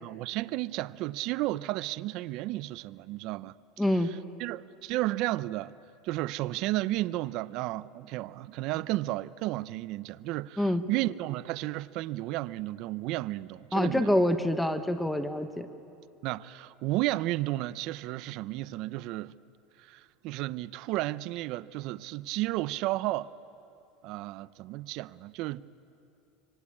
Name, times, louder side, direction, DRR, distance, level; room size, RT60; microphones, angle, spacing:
voice 1, 0.0-5.7 6.0-14.2 16.2-19.3 19.8-23.3 24.0-25.7, right 17 dB, 55° right, 0.6 m, -33 dB
voice 2, 3.8-4.1 10.6-10.8 13.7-15.7, left 1 dB, 5° left, 1.2 m, -26 dB
26.5 x 24.5 x 8.6 m
supercardioid pair, 125°, 0 cm